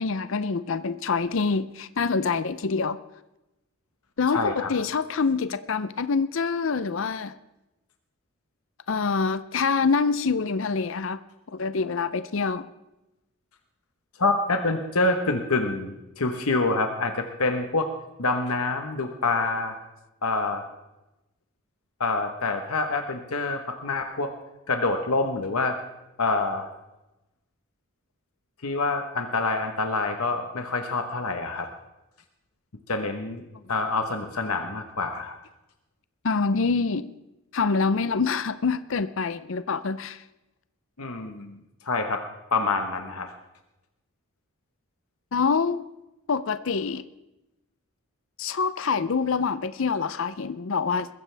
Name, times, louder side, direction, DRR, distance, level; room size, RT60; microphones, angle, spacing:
voice 1, 0.0-3.0 4.2-7.3 8.9-11.2 11.5-12.7 36.2-37.1 37.5-40.2 45.3-45.8 46.3-47.0 48.4-51.1, left 4 dB, 60° left, 14 dB, 0.5 m, -26 dB
voice 2, 4.3-4.7 14.2-17.9 18.2-19.8 20.2-20.6 22.0-24.3 24.7-25.8 26.2-26.7 28.6-31.7 32.9-33.4 33.7-35.4 41.0-41.6 41.8-42.2 42.5-43.3, left 3 dB, 80° left, 5 dB, 1.2 m, -26 dB
21.5 x 15.0 x 3.4 m, 0.96 s
head